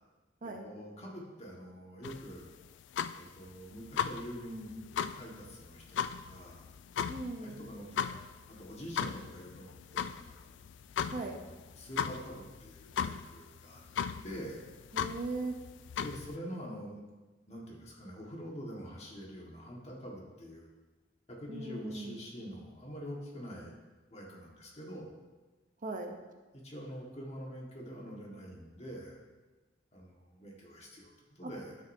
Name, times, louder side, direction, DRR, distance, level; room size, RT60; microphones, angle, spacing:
voice 1, 0.4-2.5 3.2-6.6 7.4-10.4 11.1-13.8 14.2-14.7 16.0-17.0 17.5-20.7 21.3-23.8 24.1-25.1 26.5-29.2 29.9-31.8, equal, 35° left, -2 dB, 1.6 m, -45 dB
sound 1, 2.0-16.4, left 7 dB, 75° left, 0.3 m, -38 dB
voice 2, 7.1-7.6 11.1-11.4 14.9-15.5 21.5-22.2 25.8-26.2 31.4-31.5, right 2 dB, 45° right, 3 dB, 0.8 m, -38 dB
11.5 x 6.4 x 2.7 m, 1.2 s
head